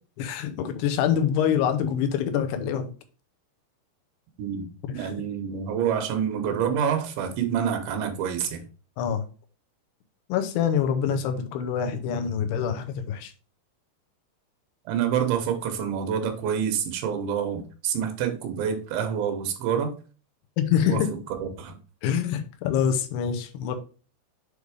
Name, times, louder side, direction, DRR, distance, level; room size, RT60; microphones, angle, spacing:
voice 1, 0.2-2.9 4.9-5.1 9.0-9.2 10.3-13.3 20.6-21.1 22.0-23.8, left 8 dB, 80° left, 2.8 m, -25 dB
voice 2, 4.4-8.6 14.9-19.9 20.9-21.0 21.4-21.8, right 8 dB, 90° right, 3.4 m, -27 dB
8.0 x 3.4 x 4.8 m
omnidirectional pair, 4.9 m